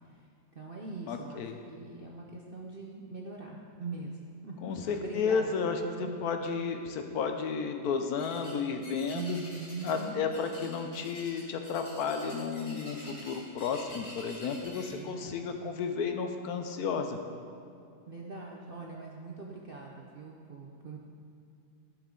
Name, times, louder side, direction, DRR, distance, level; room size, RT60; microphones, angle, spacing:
voice 1, 0.5-6.7 9.1-10.2 14.8-15.8 18.1-21.0, right 3 dB, 55° right, -2 dB, 0.6 m, -42 dB
voice 2, 1.1-1.6 4.6-9.4 9.8-17.2, left 5 dB, 70° left, 6 dB, 1.1 m, -32 dB
sound 1, 8.2-8.6 8.8-10.0 10.3-14.9, left 1 dB, 35° left, 2.1 m, -48 dB
12.0 x 6.4 x 3.8 m, 2.5 s
omnidirectional pair, 1.8 m